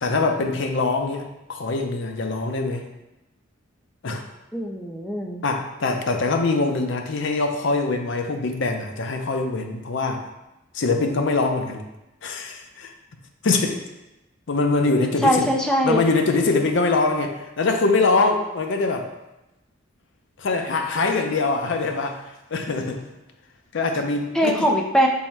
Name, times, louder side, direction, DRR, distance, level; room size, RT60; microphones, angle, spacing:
voice 1, 0.0-2.9 4.0-4.2 5.4-10.2 10.7-11.8 12.2-12.9 13.4-13.8 14.5-15.5 15.8-19.1 20.4-22.2 22.5-23.0 23.7-24.7, left 3 dB, 65° left, 4 dB, 0.5 m, -23 dB
voice 2, 4.5-5.4 15.2-16.0 24.3-25.1, equal, 5° left, 0 dB, 0.4 m, -21 dB
5.4 x 2.1 x 4.5 m, 0.96 s
head